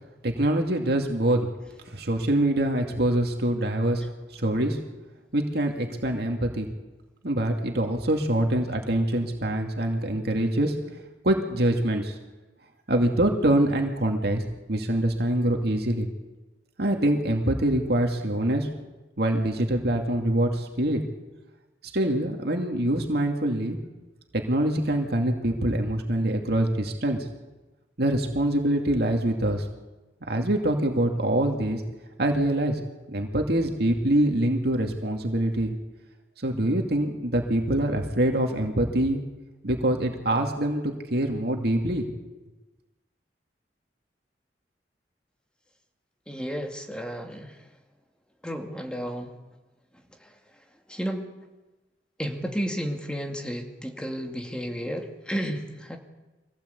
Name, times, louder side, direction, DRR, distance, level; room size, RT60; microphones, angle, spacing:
voice 1, 0.2-1.5 1.9-4.0 4.3-4.8 5.3-6.7 7.2-10.7 11.2-12.2 12.9-14.4 14.7-16.1 16.8-18.7 19.2-21.0 21.9-23.8 24.3-27.2 28.0-29.7 30.3-31.8 32.2-32.8 33.1-35.7 36.4-39.2 39.6-42.1, right 1 dB, 65° right, 3 dB, 2.4 m, -24 dB
voice 2, 46.3-47.6 48.4-49.3 50.2-50.3 50.9-51.3 52.2-56.0, equal, 5° left, 3 dB, 2.4 m, -32 dB
24.5 x 17.0 x 8.3 m, 1.1 s
head